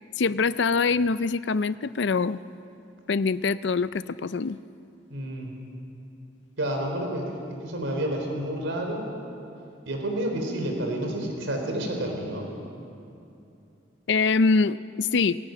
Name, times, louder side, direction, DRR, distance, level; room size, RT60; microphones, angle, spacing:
voice 1, 0.2-2.4 3.1-4.6 14.1-15.4, left 4 dB, 65° left, 15 dB, 0.5 m, -24 dB
voice 2, 5.1-5.5 6.6-7.4 7.6-9.1 9.9-12.5, right 1 dB, 85° right, 2 dB, 3.9 m, -29 dB
19.0 x 17.0 x 9.2 m, 2.7 s
head